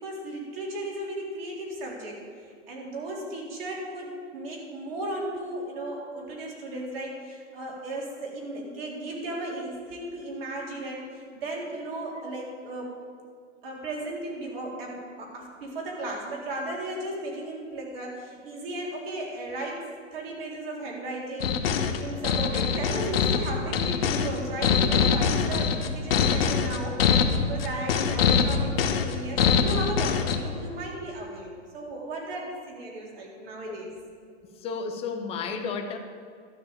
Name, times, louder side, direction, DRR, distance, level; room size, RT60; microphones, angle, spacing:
voice 1, 0.0-12.9 13.6-21.6 22.0-33.9, right 1 dB, 50° right, -2 dB, 3.8 m, -35 dB
sound 1, 21.4-30.4, left 7 dB, 50° left, 1.2 m, -23 dB
voice 2, 34.5-36.0, left 5 dB, 15° left, 5 dB, 0.9 m, -32 dB
12.5 x 6.3 x 8.7 m, 2.3 s
hypercardioid pair, 140°, 37 cm